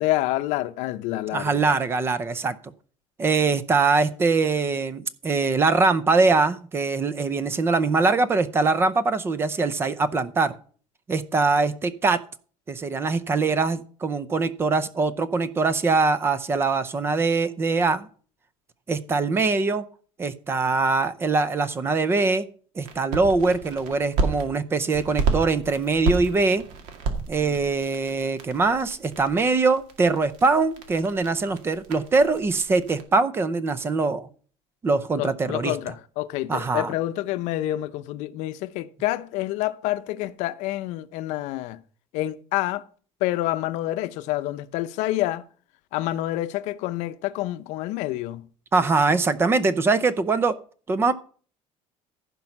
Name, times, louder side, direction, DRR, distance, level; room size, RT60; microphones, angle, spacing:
voice 1, 0.0-1.8 27.4-27.6 35.1-41.8 42.1-42.8 43.2-45.4 45.9-48.5, left 15 dB, 70° left, 0.7 m, -28 dB
voice 2, 1.3-2.5 3.2-10.5 11.1-12.2 12.7-18.1 18.9-19.8 20.2-22.5 22.8-26.6 27.3-34.3 34.8-35.7 36.5-36.9 48.7-50.5 50.9-51.1, right 3 dB, 20° right, 0.6 m, -22 dB
sound 1, 22.8-24.4 24.9-33.0, right 4 dB, 75° right, 2.2 m, -31 dB
15.0 x 5.4 x 5.9 m
cardioid pair, 175°, 12 cm